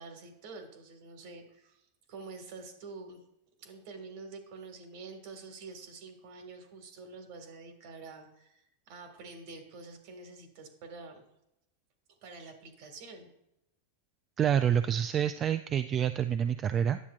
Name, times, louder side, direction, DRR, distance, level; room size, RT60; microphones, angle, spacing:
voice 1, 0.0-3.2 3.6-11.2 12.2-13.3, right 4 dB, 60° right, 5 dB, 1.7 m, -47 dB
voice 2, 14.4-17.0, right 9 dB, 30° right, 10 dB, 0.3 m, -27 dB
10.0 x 7.2 x 2.4 m, 0.81 s
hypercardioid pair, 110°, 0 cm